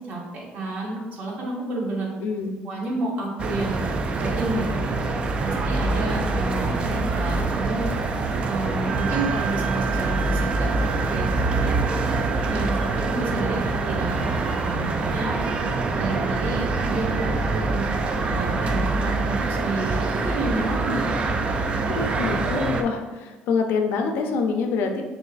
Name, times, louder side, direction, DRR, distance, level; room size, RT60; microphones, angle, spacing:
voice 1, 0.1-2.1 2.6-4.8 5.4-7.9 8.4-11.7 12.5-14.3 14.6-15.3 16.0-17.9 18.3-21.2, right 2 dB, 50° right, -2 dB, 1.1 m, -30 dB
voice 2, 2.2-2.5 21.9-25.0, left 5 dB, 70° left, 4 dB, 0.5 m, -25 dB
sound 1, 3.4-22.8, right 3 dB, 30° right, 0.3 m, -25 dB
sound 2, 8.9-19.7, right 8 dB, 90° right, 1.4 m, -37 dB
6.2 x 2.6 x 2.5 m, 1.2 s
cardioid pair, 145°, 3 cm